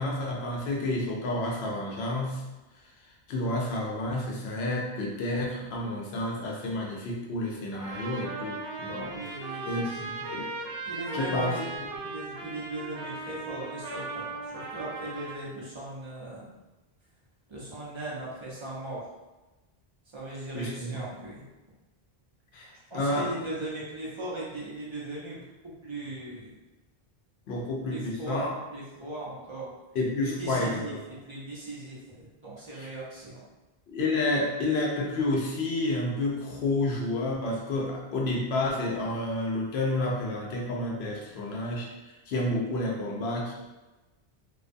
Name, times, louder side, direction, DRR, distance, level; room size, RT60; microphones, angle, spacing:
voice 1, 0.0-2.4 3.3-9.2 9.5-9.8 10.2-10.4 11.1-11.5 20.5-20.9 22.5-23.3 27.5-28.5 29.9-31.0 32.8-32.9 33.9-41.9 42.3-43.5, left 2 dB, 85° left, -2 dB, 0.9 m, -30 dB
Trumpet, 7.7-15.5, right 3 dB, 75° right, 0.9 m, -38 dB
voice 2, 9.1-10.0 10.8-11.7 12.0-16.5 17.5-19.0 20.1-21.4 22.9-25.5 25.8-26.5 27.9-29.7 30.2-33.4, right 2 dB, 35° right, -7 dB, 0.6 m, -38 dB
2.5 x 2.2 x 2.5 m, 1.1 s
omnidirectional pair, 1.0 m